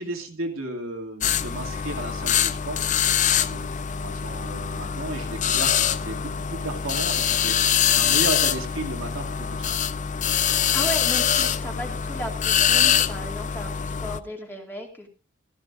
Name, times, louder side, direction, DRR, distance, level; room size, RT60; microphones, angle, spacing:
voice 1, 0.0-3.2 3.4-9.8, right 2 dB, 70° right, 1 dB, 2.5 m, -34 dB
sound 1, 1.2-14.2, left 9 dB, 35° left, 0.5 m, -24 dB
voice 2, 10.7-15.1, equal, 10° left, 1 dB, 2.3 m, -35 dB
16.0 x 14.0 x 2.5 m, 0.32 s
head